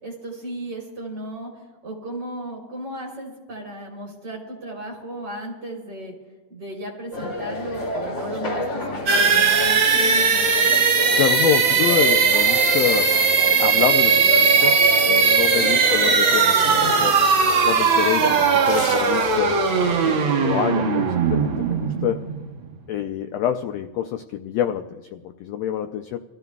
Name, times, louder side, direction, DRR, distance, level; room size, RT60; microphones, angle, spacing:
voice 1, 0.0-1.5 1.8-6.1 6.5-10.5 15.6-15.9, right 1 dB, 35° right, 0 dB, 3.9 m, -35 dB
sound 1, 7.1-20.0, left 2 dB, 35° left, 2.9 m, -30 dB
sound 2, 9.1-22.8, right 5 dB, 55° right, 1.6 m, -19 dB
voice 2, 11.2-13.1 13.6-17.2 17.6-19.7 20.0-22.2 22.9-26.2, left 10 dB, 80° left, 6 dB, 1.5 m, -26 dB
sound 3, 18.6-19.7 20.1-20.2, left 3 dB, 55° left, 2.7 m, -35 dB
27.5 x 14.5 x 2.3 m, 1.3 s
omnidirectional pair, 3.6 m